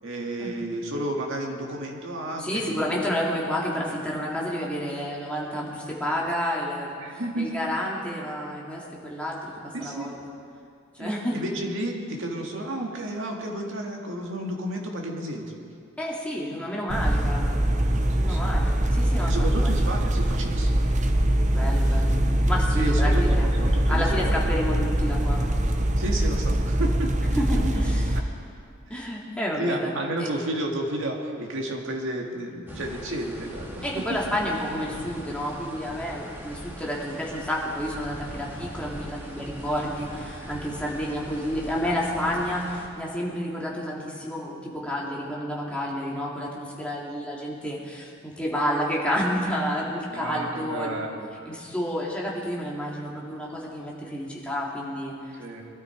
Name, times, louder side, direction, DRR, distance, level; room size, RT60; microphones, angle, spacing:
voice 1, 0.0-2.9 7.0-7.6 9.7-10.1 11.0-15.6 18.2-18.5 19.2-20.8 22.7-24.5 26.0-27.1 28.9-29.1 29.6-34.0 50.1-51.3 55.4-55.6, right 1 dB, 65° right, 0 dB, 2.1 m, -32 dB
voice 2, 2.4-9.5 9.8-10.1 11.0-11.4 16.0-17.6 18.2-19.7 21.5-23.5 23.9-25.5 27.3-28.2 28.9-30.0 33.8-51.0 51.4-55.4, equal, 5° left, -4 dB, 2.5 m, -30 dB
sound 1, 16.9-28.2, right 1 dB, 35° right, 0.9 m, -23 dB
sound 2, 32.7-42.9, equal, 10° right, 2.2 m, -40 dB
22.5 x 13.0 x 4.6 m, 2.4 s
head